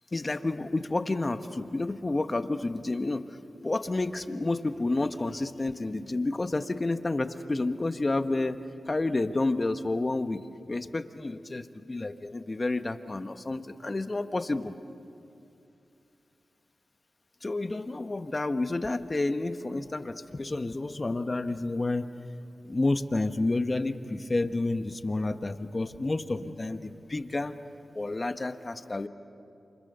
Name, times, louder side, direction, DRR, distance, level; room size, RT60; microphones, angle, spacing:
voice 1, 0.1-8.6 8.9-10.4 10.7-14.7 17.4-22.1 22.6-27.6 27.9-29.1, left 2 dB, 40° left, 9 dB, 1.4 m, -30 dB
29.0 x 28.5 x 6.9 m, 2.6 s
cardioid pair, 45°, 0 cm